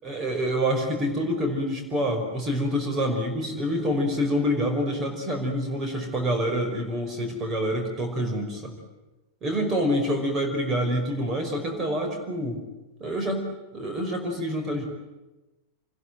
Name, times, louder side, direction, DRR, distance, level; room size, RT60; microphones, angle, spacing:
voice 1, 0.0-8.7 9.4-12.6 13.0-13.4 13.7-14.8, equal, 25° right, 4 dB, 5.4 m, -27 dB
27.5 x 21.0 x 9.4 m, 1.1 s
figure-of-eight pair, 90°, 0 cm